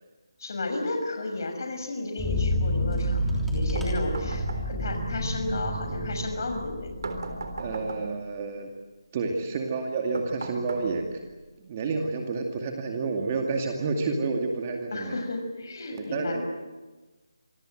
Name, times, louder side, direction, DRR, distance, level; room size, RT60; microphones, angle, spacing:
voice 1, 0.4-6.9 14.9-16.4, left 2 dB, 50° left, 5 dB, 6.2 m, -33 dB
sound 1, 2.2-7.7, equal, ahead, 3.3 m, -29 dB
sound 2, 3.8-5.0 7.0-8.3 10.1-11.3, right 2 dB, 55° right, 3.8 m, -36 dB
voice 2, 7.6-8.7 9.1-11.0 11.6-15.2 15.9-16.4, right 4 dB, 25° right, 2 dB, 2.3 m, -29 dB
27.0 x 22.0 x 7.9 m, 1.2 s
figure-of-eight pair, 165°, 2 cm